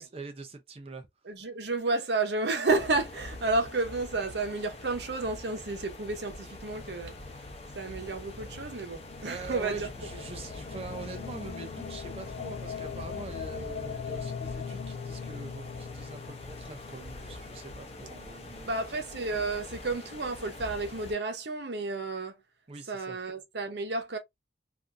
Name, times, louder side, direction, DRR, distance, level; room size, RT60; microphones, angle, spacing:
voice 1, 0.0-1.1 9.2-18.9 22.7-23.2, right 4 dB, 30° right, 0.5 m, -43 dB
voice 2, 1.2-7.1 7.7-9.9 18.7-22.4 22.9-24.2, right 3 dB, 70° right, 0.8 m, -31 dB
sound 1, 2.7-21.1, left 2 dB, 35° left, 0.7 m, -44 dB
sound 2, 6.7-18.9, left 6 dB, 70° left, 0.4 m, -42 dB
3.4 x 2.5 x 2.5 m
head